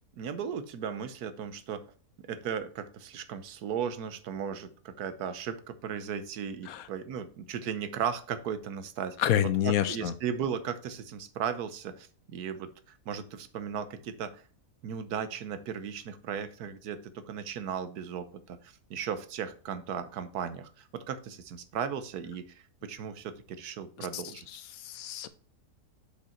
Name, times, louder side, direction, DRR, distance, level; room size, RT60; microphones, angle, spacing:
voice 1, 0.2-1.8 2.3-9.2 9.4-12.1 12.3-12.7 13.1-14.4 14.8-18.6 18.9-22.5 22.8-24.5, right 7 dB, 80° right, 11 dB, 1.3 m, -36 dB
voice 2, 9.2-10.1 24.1-24.2 24.8-25.3, left 11 dB, 70° left, 13 dB, 1.0 m, -27 dB
6.8 x 5.1 x 4.3 m, 0.41 s
omnidirectional pair, 1.7 m